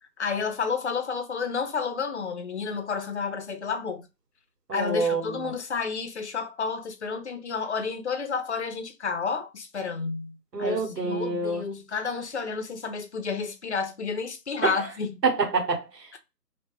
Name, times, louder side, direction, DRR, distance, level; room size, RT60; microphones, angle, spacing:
voice 1, 0.2-4.1 4.7-15.1, left 5 dB, 50° left, 0.4 m, -31 dB
voice 2, 4.7-5.5 10.5-11.6 14.6-14.9 15.2-16.1, right 3 dB, 85° right, 1.1 m, -27 dB
2.2 x 2.1 x 3.0 m
hypercardioid pair, 165°, 48 cm